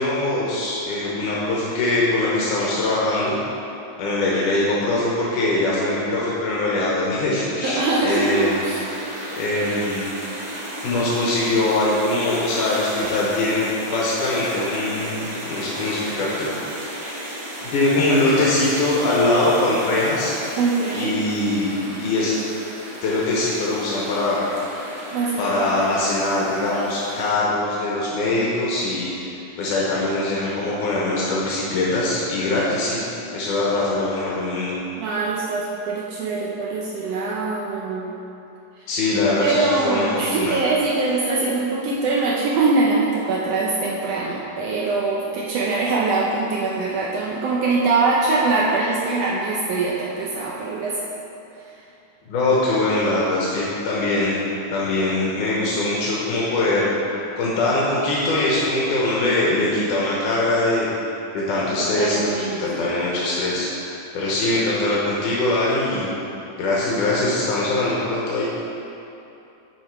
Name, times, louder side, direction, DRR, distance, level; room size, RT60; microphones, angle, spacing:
voice 1, 0.0-3.4 4.0-8.5 9.3-10.1 10.8-16.5 16.8-16.9 17.6-20.4 20.9-21.7 22.0-22.4 23.0-24.4 25.4-33.0 33.3-34.7 38.9-40.7 52.3-54.4 54.7-60.9 61.3-63.7 64.1-66.1 66.6-68.4, left 2 dB, 80° left, -6 dB, 2.5 m, -22 dB
voice 2, 7.6-8.8 20.6-21.2 25.1-25.6 35.0-38.2 39.4-51.0 61.8-62.8, right 3 dB, 80° right, -4 dB, 1.5 m, -23 dB
sound 1, 8.1-27.3, right 1 dB, 60° right, 2.7 m, -34 dB
8.0 x 5.3 x 4.7 m, 2.9 s
omnidirectional pair, 3.6 m